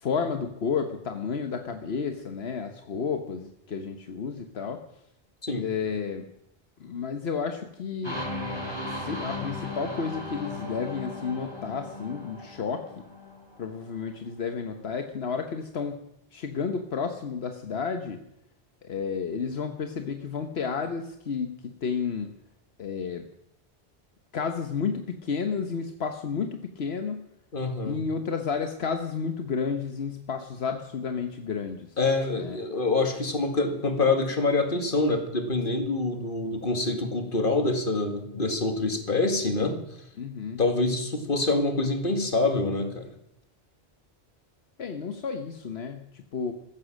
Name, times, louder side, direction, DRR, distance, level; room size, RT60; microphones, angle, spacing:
voice 1, 0.0-4.8 5.6-6.3 6.8-8.3 8.8-13.0 13.6-16.0 16.3-18.2 18.8-22.3 22.8-23.3 24.3-27.2 27.8-32.0 32.3-32.6 40.2-40.6 44.8-46.5, left 5 dB, 80° left, 6 dB, 1.3 m, -31 dB
sound 1, 8.0-13.8, left 2 dB, 25° left, 4.1 m, -36 dB
voice 2, 27.5-28.0 32.0-39.8 40.6-43.1, left 3 dB, 55° left, 6 dB, 2.3 m, -26 dB
15.0 x 14.5 x 6.5 m, 0.77 s
omnidirectional pair, 1.0 m